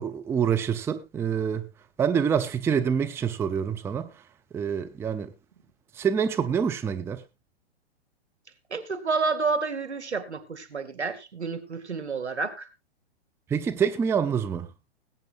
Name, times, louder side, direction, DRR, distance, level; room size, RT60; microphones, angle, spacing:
voice 1, 0.0-1.7 2.0-4.1 4.5-5.3 5.9-7.2 13.5-14.7, right 7 dB, 10° right, 0.6 m, -26 dB
voice 2, 8.7-12.7, right 4 dB, 85° right, 2.2 m, -29 dB
20.5 x 8.8 x 2.5 m
figure-of-eight pair, 120°, 33 cm